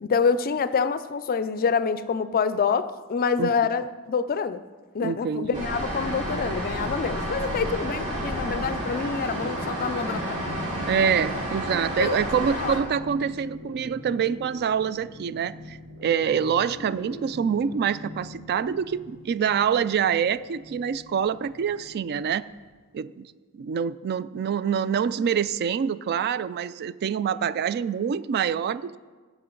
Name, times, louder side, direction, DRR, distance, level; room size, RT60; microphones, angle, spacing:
voice 1, 0.0-4.6 4.9-10.4 12.0-12.2 12.6-12.8, left 5 dB, 40° left, 13 dB, 0.4 m, -26 dB
voice 2, 5.0-5.6 10.8-22.5 22.9-23.3 23.5-29.0, right 7 dB, 50° right, 16 dB, 0.3 m, -26 dB
sound 1, 5.5-12.8, right 1 dB, 30° right, 3.0 m, -30 dB
sound 2, 8.4-22.7, equal, 65° right, 1.6 m, -43 dB
16.0 x 7.1 x 3.8 m, 1.4 s
head